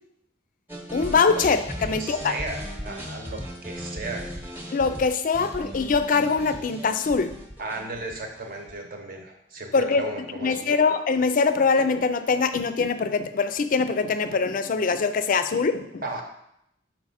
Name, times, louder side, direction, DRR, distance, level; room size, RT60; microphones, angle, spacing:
sound 1, 0.7-8.8, equal, 10° right, 1.0 m, -37 dB
voice 1, 0.9-2.4 4.7-7.3 9.7-10.1 10.4-16.0, left 4 dB, 45° left, 10 dB, 0.4 m, -23 dB
voice 2, 1.8-4.3 7.6-10.7 16.0-16.2, right 2 dB, 50° right, 3 dB, 1.0 m, -35 dB
5.9 x 4.6 x 4.2 m, 0.78 s
head